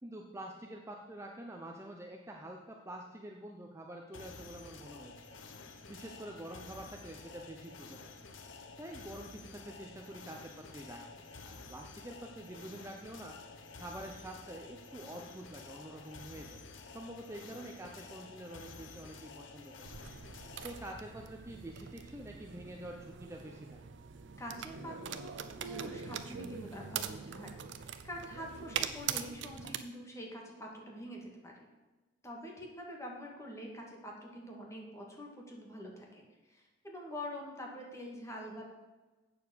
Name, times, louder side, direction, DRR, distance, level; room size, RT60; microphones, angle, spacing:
voice 1, 0.0-5.2 5.9-8.1 8.8-13.4 13.8-16.6 16.9-19.9 20.6-23.8, right 1 dB, 15° right, 1 dB, 0.7 m, -47 dB
sound 1, 4.1-20.9, left 4 dB, 80° left, 0.9 m, -51 dB
sound 2, 19.8-29.8, right 7 dB, 65° right, 0.6 m, -42 dB
voice 2, 24.4-31.7 32.2-38.7, equal, 15° left, -1 dB, 1.9 m, -45 dB
8.3 x 7.0 x 7.0 m, 1.2 s
head